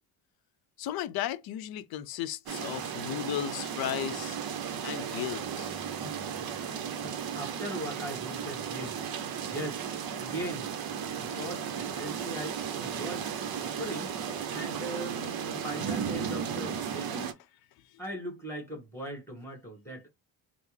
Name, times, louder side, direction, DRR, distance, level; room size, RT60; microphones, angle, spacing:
voice 1, 0.8-4.4 4.8-5.7, left 11 dB, 50° left, 0.5 m, -35 dB
sound 1, 2.5-17.3, right 7 dB, 45° right, 0.7 m, -35 dB
voice 2, 7.0-9.0 9.3-9.8 10.2-10.7 11.2-14.1 14.5-17.3 18.0-20.1, right 1 dB, 5° left, 1.6 m, -40 dB
3.3 x 2.0 x 3.1 m
supercardioid pair, 75°, 50 cm